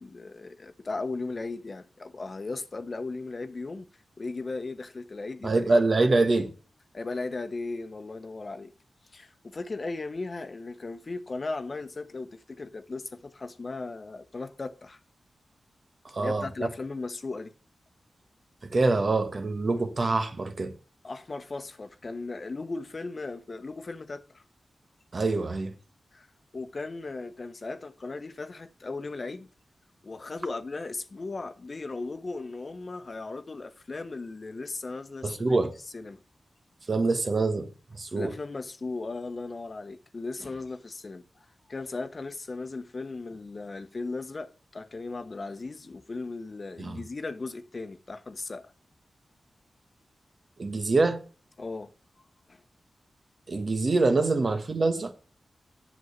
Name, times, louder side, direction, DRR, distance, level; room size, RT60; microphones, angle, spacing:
voice 1, 0.0-3.9 4.2-5.6 6.9-8.7 9.1-15.0 16.2-17.5 21.0-24.4 26.1-26.3 26.5-29.5 30.0-35.6 35.9-36.2 38.2-41.2 41.7-48.7 51.6-51.9 52.5-52.6, left 3 dB, 50° left, 1.0 m, -37 dB
voice 2, 5.4-6.5 16.0-16.7 18.6-20.7 25.1-25.7 35.2-35.7 36.9-38.3 46.8-47.0 50.6-51.2 53.5-55.1, right 3 dB, 55° right, 1.3 m, -25 dB
8.1 x 6.5 x 5.5 m
cardioid pair, 45°, 0 cm